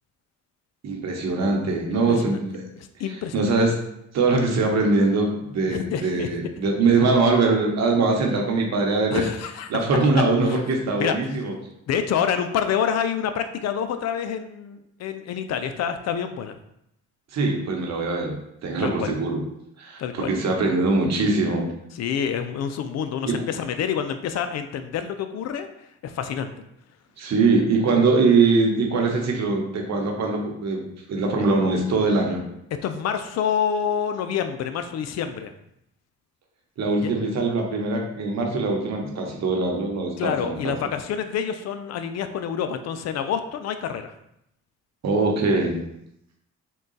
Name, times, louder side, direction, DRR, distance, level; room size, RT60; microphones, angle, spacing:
voice 1, 0.8-2.6 3.3-3.7 4.1-9.3 9.7-11.5 17.3-19.4 19.8-21.6 23.3-23.4 27.2-30.8 31.1-32.4 36.8-40.7 45.0-45.8, right 3 dB, 60° right, 1 dB, 0.9 m, -22 dB
voice 2, 1.9-2.4 3.0-3.5 5.6-6.3 9.1-9.7 10.4-10.6 11.0-11.1 11.9-16.5 18.8-19.1 20.0-20.3 21.9-25.7 26.0-26.5 32.8-35.5 37.0-37.1 40.2-44.1, left 8 dB, 60° left, 8 dB, 0.4 m, -27 dB
3.7 x 2.3 x 3.8 m, 0.78 s
cardioid pair, 90°, 30 cm